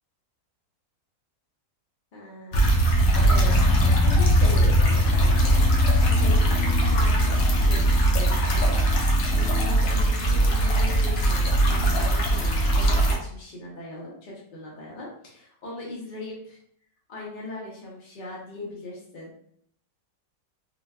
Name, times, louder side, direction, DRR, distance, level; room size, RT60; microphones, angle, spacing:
voice 1, 2.1-2.7 3.2-3.5 3.8-5.6 6.0-6.5 6.8-16.6 17.1-19.3, left 2 dB, 50° left, -5 dB, 0.6 m, -39 dB
sound 1, 2.5-13.1, right 1 dB, 65° left, 1.0 m, -20 dB
3.8 x 2.2 x 2.2 m, 0.67 s
omnidirectional pair, 1.7 m